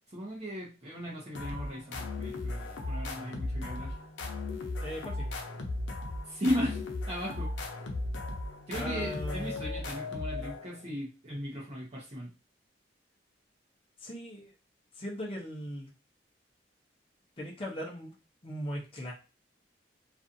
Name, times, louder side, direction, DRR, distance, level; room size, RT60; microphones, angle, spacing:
voice 1, 0.1-3.9 6.2-6.8 7.1-7.7 8.7-12.3, equal, 30° right, -6 dB, 0.6 m, -36 dB
sound 1, 1.3-10.9, left 2 dB, 90° left, 0.6 m, -36 dB
voice 2, 4.8-5.4 8.7-9.6 14.0-14.5 14.9-15.9 17.4-18.1 18.4-19.1, equal, 30° left, -2 dB, 0.6 m, -38 dB
2.5 x 2.3 x 2.5 m, 0.31 s
head